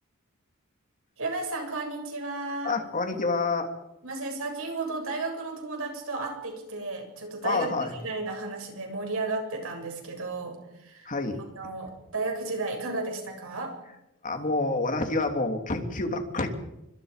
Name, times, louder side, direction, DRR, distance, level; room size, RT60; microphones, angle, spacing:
voice 1, 1.2-2.7 4.0-11.1 11.6-13.8, right 3 dB, 65° right, 3 dB, 7.4 m, -33 dB
voice 2, 2.6-3.7 7.4-7.9 11.0-11.4 14.2-16.5, left 3 dB, 35° left, 5 dB, 3.2 m, -28 dB
29.5 x 25.0 x 5.3 m, 0.92 s
head